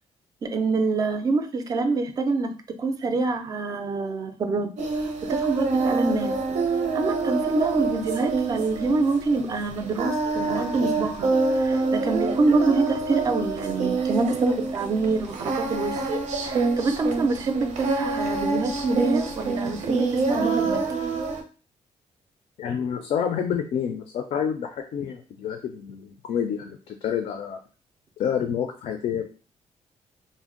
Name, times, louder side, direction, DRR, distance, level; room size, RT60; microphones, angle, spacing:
voice 1, 0.4-4.7 5.3-6.4 6.9-16.0 16.4-20.8, right 3 dB, 30° right, 8 dB, 0.3 m, -26 dB
Singing, 4.8-21.4, right 3 dB, 90° right, 0.6 m, -26 dB
voice 2, 22.6-27.6 28.2-29.2, left 8 dB, 65° left, 5 dB, 0.4 m, -28 dB
2.5 x 2.0 x 3.7 m, 0.35 s
wide cardioid pair, 175°, 12 cm